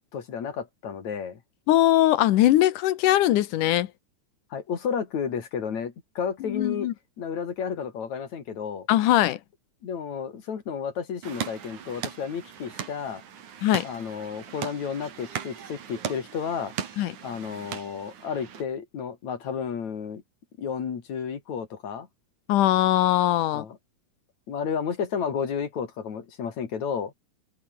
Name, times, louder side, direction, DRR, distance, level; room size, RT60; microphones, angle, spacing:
voice 1, 0.1-1.4 4.5-6.9 7.2-8.9 9.8-13.2 13.8-16.7 17.2-20.2 20.6-22.1 23.5-23.8 24.5-27.1, left 7 dB, 65° left, 3.9 m, -32 dB
voice 2, 1.7-3.9 6.5-6.9 8.9-9.4 13.6-13.9 17.0-17.1 22.5-23.6, left 14 dB, 85° left, 2.6 m, -21 dB
sound 1, 11.2-18.6, right 8 dB, 75° right, 3.8 m, -38 dB
omnidirectional pair, 3.5 m